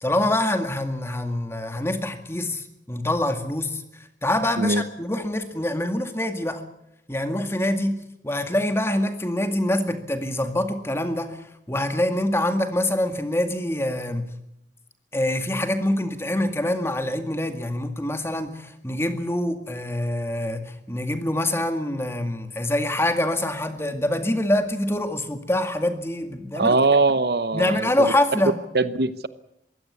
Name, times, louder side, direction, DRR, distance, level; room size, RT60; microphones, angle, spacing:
voice 1, 0.0-6.6 7.1-14.3 15.1-26.8 27.5-28.6, left 1 dB, 15° left, 7 dB, 2.0 m, -25 dB
voice 2, 26.6-28.1 28.7-29.3, right 3 dB, 60° right, 14 dB, 0.9 m, -21 dB
23.0 x 16.5 x 8.4 m, 0.80 s
head